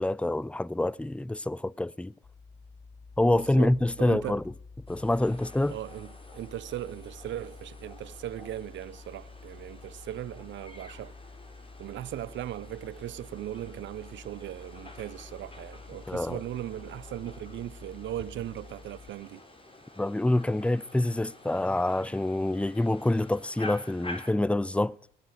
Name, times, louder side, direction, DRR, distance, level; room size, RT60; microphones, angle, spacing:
voice 1, 0.0-2.1 3.2-4.4 4.9-5.8 16.1-16.4 20.0-25.0, left 1 dB, 5° left, 0.5 m, -26 dB
sound 1, 2.2-19.1, left 4 dB, 40° left, 3.5 m, -49 dB
voice 2, 3.2-4.4 5.7-11.1 11.8-19.4, right 12 dB, 60° right, 0.7 m, -38 dB
sound 2, 4.9-24.3, left 2 dB, 25° left, 4.4 m, -49 dB
17.0 x 9.1 x 8.0 m
hypercardioid pair, 45°, 21 cm